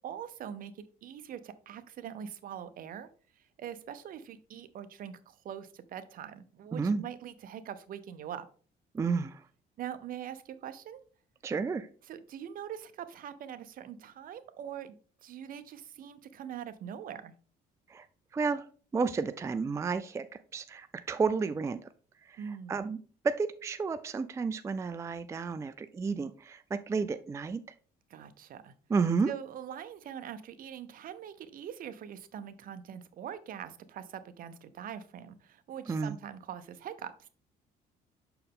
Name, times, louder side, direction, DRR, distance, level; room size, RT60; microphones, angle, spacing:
voice 1, 0.0-3.1 3.4-8.5 9.8-11.0 12.1-15.0 15.2-17.3 22.4-22.8 28.1-28.7 29.3-37.3, right 9 dB, 55° right, 12 dB, 0.7 m, -43 dB
voice 2, 6.7-7.0 8.9-9.4 11.4-11.9 17.9-18.1 18.3-18.7 18.9-20.3 20.5-21.8 22.3-23.0 23.2-27.6 28.9-29.3 35.9-36.2, right 5 dB, 15° right, 11 dB, 0.3 m, -31 dB
6.5 x 4.5 x 3.6 m, 0.41 s
cardioid pair, 110°, 17 cm